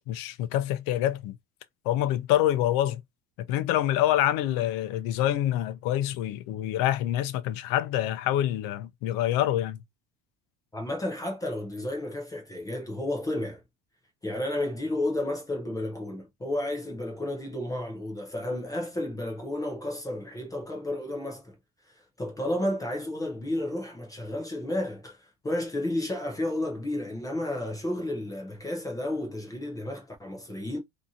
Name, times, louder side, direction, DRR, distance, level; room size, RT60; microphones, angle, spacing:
voice 1, 0.0-1.4 1.8-3.0 3.5-9.8, left 13 dB, 85° left, 0.6 m, -26 dB
voice 2, 10.7-13.6 14.2-21.5 21.9-30.8, left 1 dB, 10° left, 0.4 m, -32 dB
2.7 x 2.4 x 2.6 m
cardioid pair, 180°, 33 cm